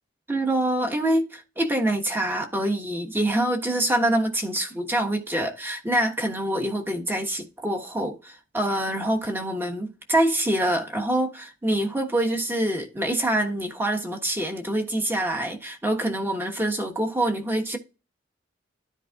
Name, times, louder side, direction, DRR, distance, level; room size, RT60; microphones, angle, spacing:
voice 1, 0.3-17.8, right 1 dB, 10° right, 1.3 m, -25 dB
13.5 x 4.8 x 2.4 m
head